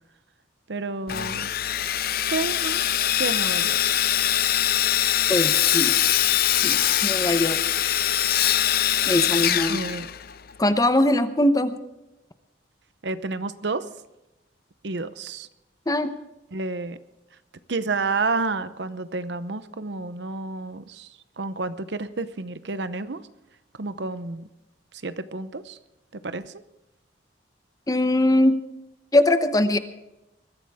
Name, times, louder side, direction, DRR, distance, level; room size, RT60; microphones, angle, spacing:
voice 1, 0.7-1.5 2.3-2.8 3.1-3.8 9.7-10.1 13.0-13.9 14.8-15.5 16.5-17.0 17.7-21.1 21.4-23.2 23.8-24.5 25.0-25.8 26.2-26.6, right 3 dB, 65° right, 13 dB, 0.8 m, -30 dB
Sawing, 1.1-10.5, left 11 dB, 55° left, 0.6 m, -23 dB
voice 2, 5.3-5.9 6.6-7.6 9.1-9.8 10.6-11.8 15.9-16.1 27.9-28.6 29.1-29.8, left 1 dB, 20° left, 10 dB, 0.9 m, -21 dB
21.5 x 14.0 x 3.6 m, 0.95 s
head